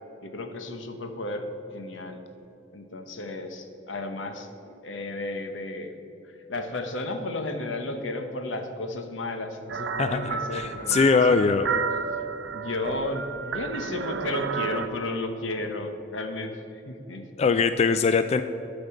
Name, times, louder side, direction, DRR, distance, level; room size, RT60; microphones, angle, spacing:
voice 1, 0.2-2.2 2.7-6.0 6.3-11.8 12.5-17.3, left 2 dB, 85° left, 6 dB, 1.1 m, -33 dB
sound 1, 9.7-14.9, right 6 dB, 65° right, 0.6 m, -31 dB
voice 2, 10.0-11.7 17.4-18.4, left 5 dB, 35° left, 10 dB, 0.3 m, -22 dB
12.0 x 5.2 x 7.6 m, 2.9 s
head